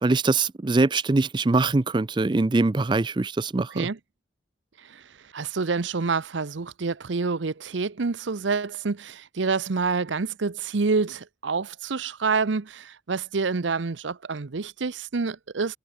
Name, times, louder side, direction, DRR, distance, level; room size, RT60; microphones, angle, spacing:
voice 1, 0.0-3.9, right 3 dB, 25° right, 0.4 m, -23 dB
voice 2, 5.3-15.8, right 4 dB, 80° right, 0.7 m, -27 dB
head